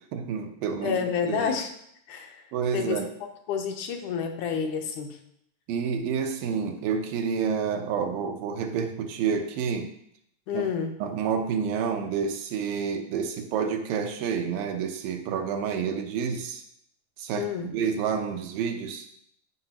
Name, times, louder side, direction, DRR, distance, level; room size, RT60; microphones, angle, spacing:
voice 1, 0.1-1.5 2.5-3.1 5.7-9.9 10.5-10.6 11.0-16.6 17.2-19.1, right 6 dB, 85° right, 5 dB, 2.6 m, -29 dB
voice 2, 0.8-1.7 2.1-2.4 2.7-5.2 10.5-10.9 17.3-17.7, left 7 dB, 75° left, 4 dB, 2.0 m, -29 dB
13.5 x 5.7 x 3.0 m, 0.72 s
omnidirectional pair, 3.9 m